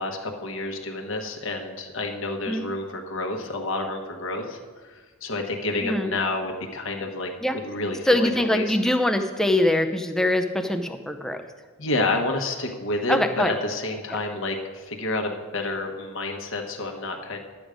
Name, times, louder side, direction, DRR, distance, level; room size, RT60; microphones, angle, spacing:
voice 1, 0.0-4.6 4.8-7.3 7.6-8.8 11.8-17.4, left 2 dB, 60° left, 2 dB, 1.2 m, -29 dB
voice 2, 5.8-6.1 7.4-7.6 8.1-11.4 13.1-13.5, left 1 dB, ahead, 5 dB, 0.5 m, -23 dB
11.5 x 8.0 x 5.1 m, 1.4 s
head